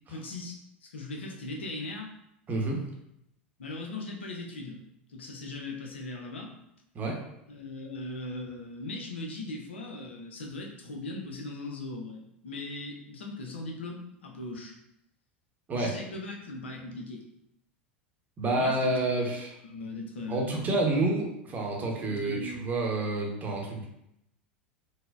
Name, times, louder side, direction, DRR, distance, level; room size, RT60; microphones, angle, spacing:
voice 1, 0.1-2.1 3.6-4.8 5.1-6.5 7.5-14.7 15.7-17.2 18.5-19.3 19.6-20.7 22.0-22.6, left 2 dB, 75° left, 1 dB, 0.6 m, -39 dB
voice 2, 2.5-2.8 6.9-7.2 15.7-15.9 18.4-19.6 20.3-23.9, right 2 dB, 25° right, 0 dB, 0.8 m, -29 dB
3.9 x 2.1 x 2.4 m, 0.80 s
figure-of-eight pair, 85°, 6 cm